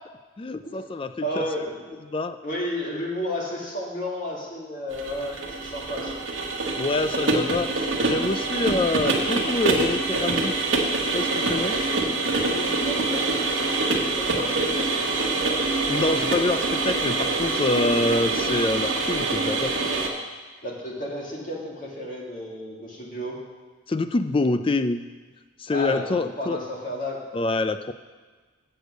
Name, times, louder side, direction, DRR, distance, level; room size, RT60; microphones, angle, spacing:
voice 1, 0.4-1.4 2.1-2.4 6.8-10.6 11.1-11.8 15.9-19.8 23.9-25.0 25.6-26.6 27.3-27.9, left 2 dB, 25° left, 11 dB, 0.3 m, -26 dB
voice 2, 1.2-1.9 2.4-6.2 12.4-14.9 20.6-23.4 25.7-27.2, equal, 40° left, -3 dB, 1.9 m, -32 dB
sound 1, 4.9-20.1, right 3 dB, 75° right, 1.3 m, -25 dB
8.0 x 6.8 x 6.3 m, 1.4 s
head